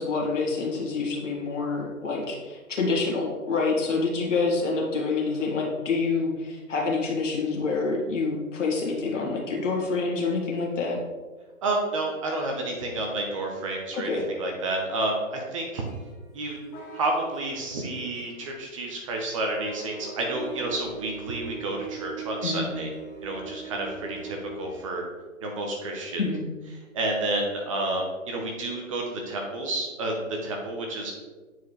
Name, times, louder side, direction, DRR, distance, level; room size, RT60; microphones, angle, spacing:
voice 1, 0.0-11.0 13.9-14.2 22.4-22.7 26.2-26.4, left 4 dB, 60° left, -1 dB, 2.0 m, -27 dB
voice 2, 11.6-14.1 14.4-15.8 16.3-16.6 16.9-22.9 23.2-25.0 25.4-26.2 26.9-30.1 30.4-31.1, right 2 dB, 25° right, 1 dB, 0.7 m, -30 dB
sound 1, 15.9-24.8, right 5 dB, 20° left, 1.0 m, -41 dB
9.0 x 4.6 x 3.2 m, 1.3 s
figure-of-eight pair, 140°, 42 cm